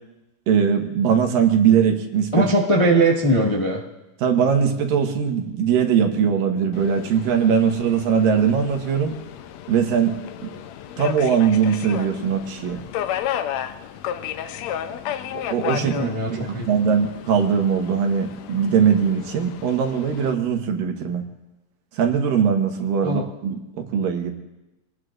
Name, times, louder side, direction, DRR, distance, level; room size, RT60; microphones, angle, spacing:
voice 1, 0.5-2.4 4.2-9.2 9.7-10.2 10.4-10.5 11.0-12.8 15.3-15.9 16.3-21.2 21.9-24.3, right 7 dB, 75° right, 4 dB, 3.0 m, -20 dB
voice 2, 2.3-3.8 15.7-16.7 23.0-23.3, right 1 dB, 35° left, -3 dB, 0.5 m, -20 dB
Subway metro underground, 6.7-20.3, left 10 dB, 85° left, 1.5 m, -33 dB
26.5 x 19.0 x 2.6 m, 0.99 s
omnidirectional pair, 4.0 m